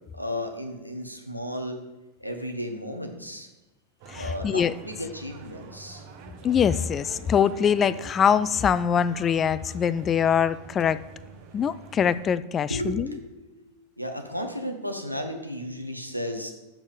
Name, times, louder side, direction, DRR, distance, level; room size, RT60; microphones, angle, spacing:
voice 1, 0.1-1.8 2.2-3.5 4.1-6.1 12.7-16.5, equal, 90° right, 4 dB, 1.1 m, -34 dB
sound 1, 4.0-12.3, right 4 dB, 45° right, 1.1 m, -46 dB
voice 2, 4.1-4.7 6.4-11.0 11.5-13.2, left 8 dB, 25° left, 16 dB, 0.3 m, -23 dB
7.1 x 6.0 x 6.8 m, 1.0 s
figure-of-eight pair, 90°, 0 cm